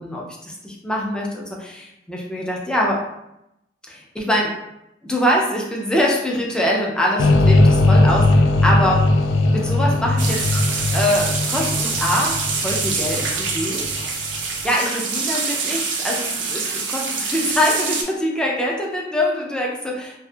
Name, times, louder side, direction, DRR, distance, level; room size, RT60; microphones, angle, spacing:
voice 1, 0.0-3.0 3.9-4.6 5.0-9.1 9.5-10.5 10.9-13.9 14.6-20.2, equal, 5° left, -2 dB, 0.4 m, -23 dB
sound 1, 7.2-14.3, left 2 dB, 85° left, 0.3 m, -18 dB
sound 2, 10.2-18.0, right 4 dB, 80° right, 0.5 m, -25 dB
2.7 x 2.4 x 2.2 m, 0.86 s
head